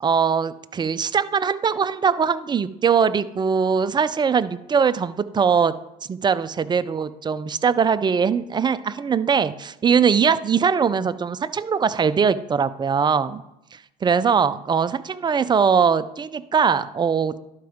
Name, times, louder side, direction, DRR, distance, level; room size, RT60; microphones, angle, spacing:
voice 1, 0.0-5.7 6.1-13.4 13.7-17.4, right 6 dB, 20° right, 14 dB, 0.5 m, -21 dB
12.0 x 4.8 x 3.6 m, 0.90 s
hypercardioid pair, 80°, 20 cm